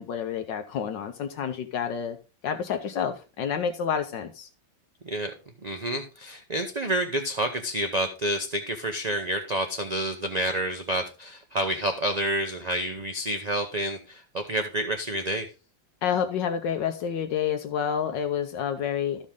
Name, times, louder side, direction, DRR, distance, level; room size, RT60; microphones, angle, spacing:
voice 1, 0.0-2.2 2.4-4.5 16.0-19.3, left 8 dB, 75° left, 7 dB, 1.5 m, -29 dB
voice 2, 5.6-15.5, right 1 dB, 40° right, 5 dB, 0.5 m, -29 dB
13.5 x 5.3 x 3.7 m, 0.32 s
omnidirectional pair, 2.0 m